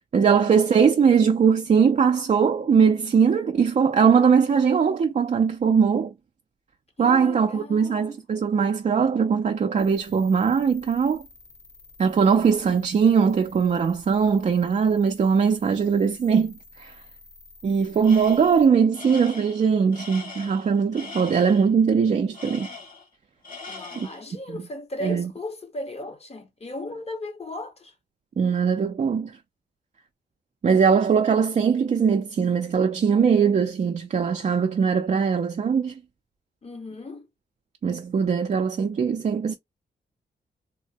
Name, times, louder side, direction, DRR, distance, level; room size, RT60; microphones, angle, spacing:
voice 1, 0.1-6.1 7.0-11.2 12.0-16.9 17.6-22.7 24.0-24.1 24.5-24.6 25.0-25.3 28.4-29.3 30.6-36.0 37.8-39.5, right 6 dB, 45° right, 0.4 m, -21 dB
voice 2, 7.0-8.2 23.7-27.9 36.6-37.3, left 2 dB, 35° left, 1.0 m, -36 dB
sound 1, 9.8-18.7, left 3 dB, 85° left, 1.5 m, -51 dB
Tools, 18.0-18.6 18.9-21.7 22.3-23.2 23.4-24.3, left 4 dB, 50° left, 1.9 m, -41 dB
3.5 x 2.1 x 2.6 m
cardioid pair, 90°, 18 cm